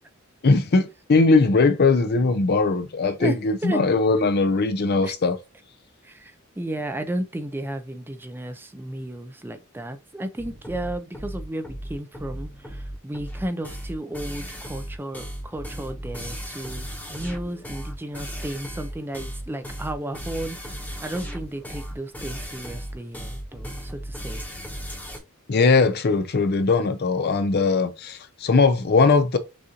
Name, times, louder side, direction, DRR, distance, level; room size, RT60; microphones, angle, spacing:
voice 1, 0.4-5.4 25.5-29.4, left 3 dB, 50° left, 0.5 m, -20 dB
voice 2, 3.2-3.8 5.0-5.1 6.0-24.4, right 1 dB, 10° right, 0.4 m, -33 dB
sound 1, 10.4-25.2, equal, 10° left, 0.9 m, -36 dB
6.2 x 2.5 x 2.8 m
head